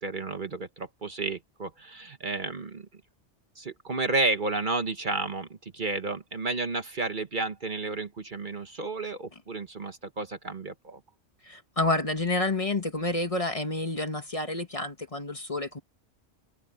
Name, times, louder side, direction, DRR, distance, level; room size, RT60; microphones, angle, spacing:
voice 1, 0.0-2.9 3.6-11.0, right 3 dB, 45° right, 1.2 m, -32 dB
voice 2, 11.4-15.8, left 2 dB, 30° left, 1.4 m, -29 dB
omnidirectional pair, 1.3 m